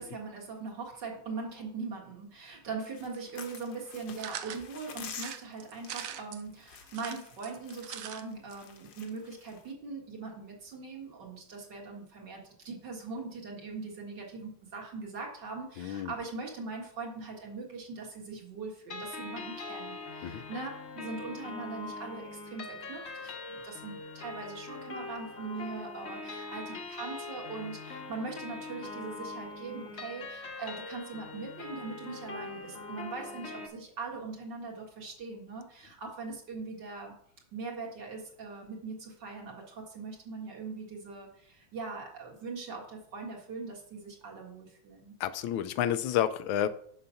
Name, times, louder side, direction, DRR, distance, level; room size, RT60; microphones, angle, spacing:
voice 1, 0.0-37.1 37.5-45.1, right 4 dB, 60° right, -1 dB, 2.3 m, -41 dB
sound 1, 2.8-9.7, left 7 dB, 60° left, 1.3 m, -49 dB
sound 2, 4.2-4.6 5.1-6.4 6.9-8.2 8.5-8.6 8.8-8.9, right 9 dB, 85° right, 0.7 m, -41 dB
voice 2, 15.8-16.1 20.2-20.4 45.2-46.7, left 10 dB, 90° left, 12 dB, 1.4 m, -30 dB
sound 3, 18.9-33.7, left 3 dB, 45° left, 0.9 m, -42 dB
6.7 x 5.7 x 5.6 m, 0.63 s
omnidirectional pair, 2.1 m